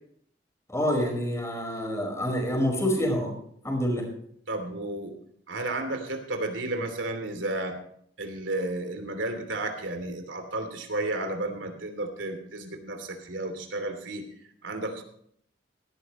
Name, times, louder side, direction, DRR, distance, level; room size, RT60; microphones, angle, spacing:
voice 1, 0.7-3.3 3.6-4.1, equal, 15° left, 2 dB, 5.0 m, -27 dB
voice 2, 4.5-5.1 5.5-7.7 8.2-14.2 14.6-15.0, right 2 dB, 85° right, 6 dB, 2.9 m, -32 dB
17.5 x 13.5 x 3.1 m, 0.65 s
head